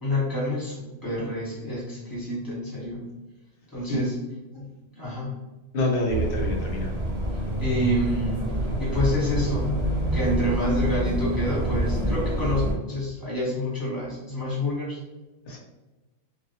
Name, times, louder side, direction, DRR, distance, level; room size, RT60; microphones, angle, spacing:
voice 1, 0.0-3.1 3.7-4.2 4.5-5.3 7.6-8.4 8.8-9.7 10.1-15.0, equal, 20° left, -7 dB, 0.9 m, -28 dB
voice 2, 5.7-6.9 15.5-15.6, left 1 dB, 55° left, -1 dB, 0.7 m, -26 dB
sound 1, 6.1-12.7, right 1 dB, 30° right, 0.7 m, -27 dB
2.1 x 2.0 x 2.8 m, 1.1 s
omnidirectional pair, 1.2 m